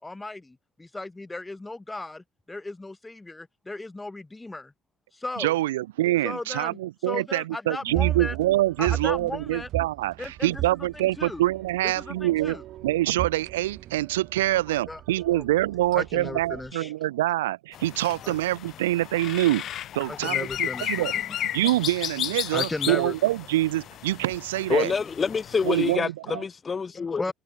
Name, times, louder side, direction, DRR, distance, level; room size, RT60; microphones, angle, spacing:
voice 1, 0.0-4.7 5.1-5.6 6.2-6.8 7.0-8.3 8.8-9.7 10.2-10.6 10.9-11.4 11.8-12.6 14.5-15.0 15.3-15.5 15.9-16.9 18.2-18.3 20.1-21.4 22.5-23.1 25.3-25.4 25.7-25.8 27.1-27.3, left 2 dB, 15° left, 4.4 m, -36 dB
voice 2, 5.4-12.6 12.8-19.6 19.9-21.1 21.4-24.9 25.6-26.4, right 16 dB, 80° right, 3.2 m, -25 dB
sound 1, 7.9-16.7, right 14 dB, 60° right, 2.1 m, -35 dB
sound 2, 17.7-26.0, left 11 dB, 55° left, 1.0 m, -34 dB
voice 3, 24.7-27.3, left 5 dB, 35° left, 5.3 m, -26 dB
hypercardioid pair, 55°, 0 cm